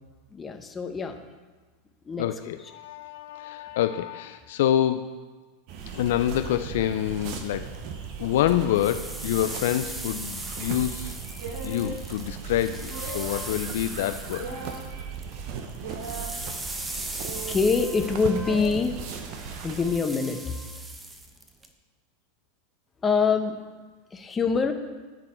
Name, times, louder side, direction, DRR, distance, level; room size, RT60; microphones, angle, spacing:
voice 1, 0.3-1.2 2.0-2.3 12.9-13.5 17.4-19.0 19.6-20.8 23.0-23.6 24.1-24.7, left 5 dB, 20° left, 5 dB, 0.9 m, -25 dB
voice 2, 2.2-5.2 5.9-7.7 8.2-11.2 11.6-14.5, left 11 dB, 70° left, 9 dB, 0.4 m, -27 dB
sound 1, 5.7-20.0, right 6 dB, 55° right, 0.9 m, -38 dB
sound 2, 8.5-15.3 15.6-21.7, right 2 dB, 10° right, 0.8 m, -39 dB
sound 3, 11.4-12.0 12.9-13.5 14.4-14.8 15.8-16.3 17.2-17.7 18.5-18.8, right 4 dB, 75° right, 2.3 m, -38 dB
11.5 x 4.1 x 4.4 m, 1.3 s
hypercardioid pair, 100°, 0 cm